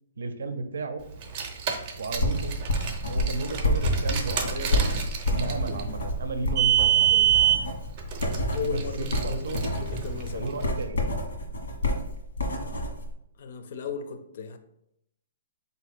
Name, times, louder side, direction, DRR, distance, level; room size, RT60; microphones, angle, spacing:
voice 1, 0.2-1.0 2.0-2.6 3.1-4.9 5.3-7.3 8.6-9.6 10.3-11.0, right 3 dB, 85° right, 0.6 m, -33 dB
Car, 1.1-10.7, right 10 dB, 35° right, 0.6 m, -27 dB
sound 1, 2.1-13.1, left 1 dB, 90° left, 1.3 m, -29 dB
voice 2, 8.5-10.5 13.4-14.6, left 5 dB, 50° left, 0.5 m, -36 dB
4.0 x 2.7 x 4.3 m
hypercardioid pair, 160°, 0 cm